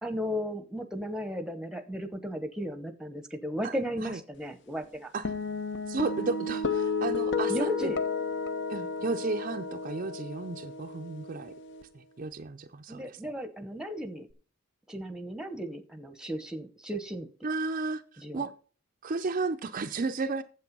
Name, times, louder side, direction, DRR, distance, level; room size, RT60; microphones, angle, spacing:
voice 1, 0.0-5.1 7.5-8.0 12.9-14.3 14.9-17.3 18.2-18.4, equal, 5° right, 0.9 m, -35 dB
sound 1, 5.3-11.8, left 4 dB, 55° left, 0.8 m, -32 dB
voice 2, 5.9-7.9 8.7-11.5 11.9-13.3 17.4-18.5 19.0-20.4, right 3 dB, 40° right, 0.5 m, -33 dB
8.4 x 7.7 x 5.3 m
head